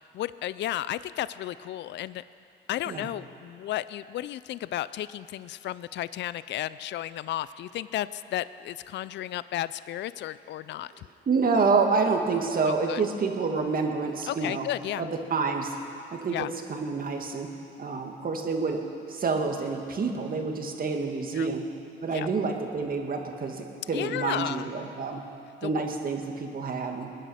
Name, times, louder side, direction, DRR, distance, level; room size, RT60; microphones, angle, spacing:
voice 1, 0.1-2.2 2.7-11.1 12.7-13.0 14.3-15.1 16.3-16.5 21.3-21.5 22.1-22.3 23.9-24.7 25.6-25.8, left 13 dB, 65° left, 16 dB, 0.4 m, -33 dB
voice 2, 11.3-14.7 15.0-15.8 16.1-17.5 17.8-18.8 19.1-21.7 22.0-25.2 25.6-27.1, right 4 dB, 45° right, 3 dB, 2.0 m, -28 dB
21.5 x 10.0 x 6.4 m, 2.7 s
cardioid pair, 90°, 20 cm